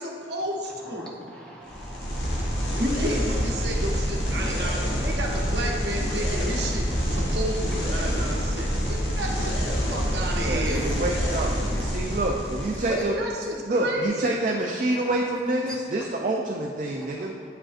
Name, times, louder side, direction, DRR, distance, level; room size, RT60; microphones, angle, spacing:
voice 1, 0.0-1.1 2.8-10.8 12.8-14.3, right 1 dB, 60° right, -1 dB, 0.9 m, -31 dB
voice 2, 0.6-2.9 3.4-3.5 4.4-4.5 5.1-5.2 6.9-7.2 8.0-8.1 10.0-10.1 10.6-11.5 11.7-11.9 12.2-12.7 15.6-15.8 17.0-17.5, equal, 5° left, -4 dB, 0.7 m, -44 dB
sound 1, 1.7-13.1, equal, 80° left, 1.2 m, -27 dB
voice 3, 10.4-13.2 13.7-17.4, right 1 dB, 40° right, 0 dB, 0.3 m, -27 dB
8.7 x 4.8 x 2.5 m, 2.2 s
head